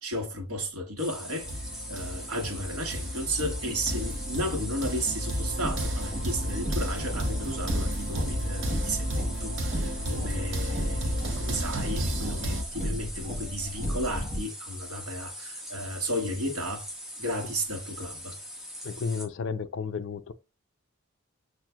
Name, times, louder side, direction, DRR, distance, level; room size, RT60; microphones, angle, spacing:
voice 1, 0.0-1.5 1.9-16.9 17.2-18.4, equal, 85° right, 1.3 m, -33 dB
sound 1, 1.0-19.3, equal, ahead, 0.6 m, -42 dB
sound 2, 1.4-12.6, equal, 55° right, 0.7 m, -32 dB
Car, 5.4-14.4, equal, 30° right, 1.0 m, -35 dB
voice 2, 18.8-20.3, left 5 dB, 55° left, 0.4 m, -32 dB
5.8 x 2.4 x 2.2 m
head